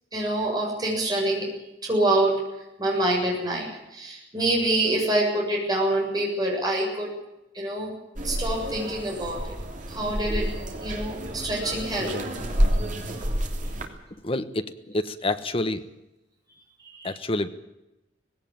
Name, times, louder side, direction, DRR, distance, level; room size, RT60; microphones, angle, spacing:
voice 1, 0.1-1.5 1.8-2.4 2.8-7.1 7.5-7.9 8.2-9.6 9.9-10.5 10.8-12.2 13.2-13.3 16.9-17.1, right 1 dB, 20° right, -2 dB, 7.6 m, -26 dB
sound 1, 8.2-13.9, equal, 45° right, 3.1 m, -29 dB
voice 2, 14.2-15.8 17.0-17.5, left 2 dB, 30° left, 10 dB, 1.2 m, -28 dB
19.0 x 17.0 x 8.8 m, 0.93 s
head